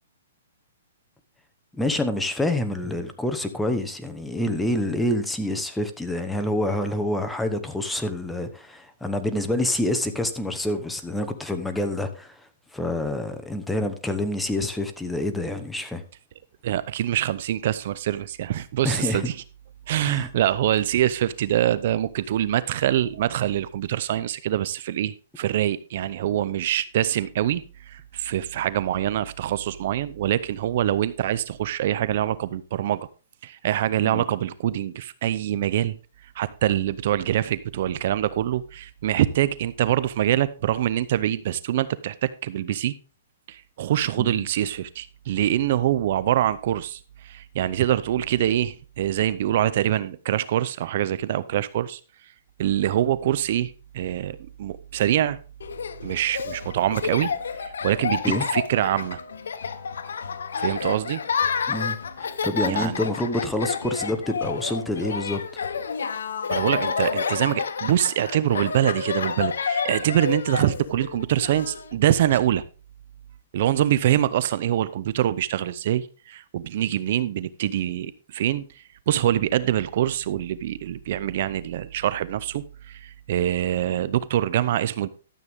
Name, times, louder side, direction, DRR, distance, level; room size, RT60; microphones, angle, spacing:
voice 1, 1.7-12.4 12.7-16.0 18.8-19.3 20.0-20.3 34.0-34.2 44.2-44.4 58.2-58.5 61.7-65.4, left 1 dB, 5° left, 0.9 m, -27 dB
voice 2, 16.6-19.3 19.9-27.6 27.9-33.1 33.4-36.0 36.4-42.9 43.5-52.0 52.6-55.4 56.0-57.3 57.6-58.2 58.5-59.2 60.6-61.2 62.7-63.1 66.5-72.6 73.5-85.1, right 12 dB, 50° right, 0.6 m, -24 dB
Laughter, 55.6-72.4, left 6 dB, 80° left, 1.0 m, -29 dB
12.5 x 7.9 x 3.5 m
hypercardioid pair, 155°, 0 cm